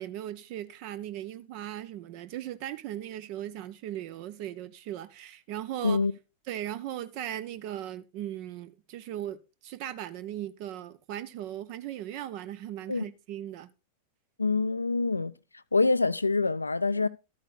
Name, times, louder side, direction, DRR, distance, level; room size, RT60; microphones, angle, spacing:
voice 1, 0.0-6.0 6.5-13.7, right 12 dB, 45° right, 0.5 m, -38 dB
voice 2, 14.4-15.3 15.7-17.1, left 3 dB, 80° left, 0.3 m, -25 dB
13.0 x 8.5 x 2.5 m
figure-of-eight pair, 90°, 0 cm